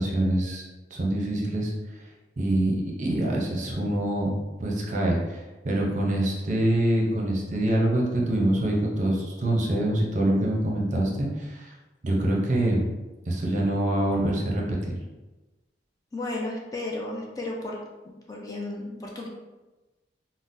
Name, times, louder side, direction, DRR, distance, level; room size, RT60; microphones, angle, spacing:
voice 1, 0.0-2.0 2.4-11.7 12.0-12.8 13.3-14.9, right 1 dB, 45° right, -2 dB, 0.6 m, -25 dB
voice 2, 16.1-17.8 18.3-19.3, left 2 dB, 20° left, -2 dB, 0.3 m, -33 dB
3.7 x 2.0 x 2.6 m, 1.1 s
head